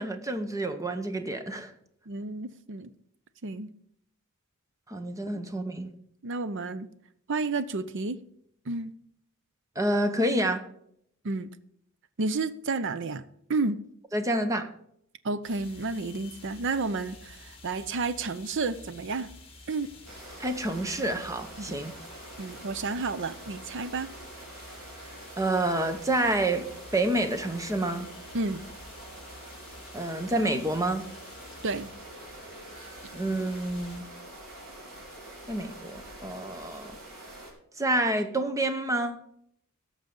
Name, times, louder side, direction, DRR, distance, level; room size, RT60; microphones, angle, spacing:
voice 1, 0.0-1.7 4.9-5.9 9.8-10.6 14.1-14.7 20.4-21.9 25.4-26.7 26.9-28.1 29.9-31.0 33.1-34.1 35.5-37.0 37.8-39.2, right 1 dB, 15° right, 0.9 m, -28 dB
voice 2, 2.1-2.9 3.4-3.7 6.2-6.9 7.3-8.2 8.7-8.9 11.2-11.5 12.2-13.2 13.5-13.8 15.2-19.3 19.7-19.9 21.6-21.7 22.4-24.1 28.3-28.6 31.6-31.9, right 3 dB, 60° right, 0.6 m, -31 dB
sound 1, 15.4-34.0, left 2 dB, 25° left, 2.1 m, -50 dB
sound 2, 20.0-37.5, right 1 dB, 90° right, 4.1 m, -46 dB
17.0 x 6.6 x 3.8 m
head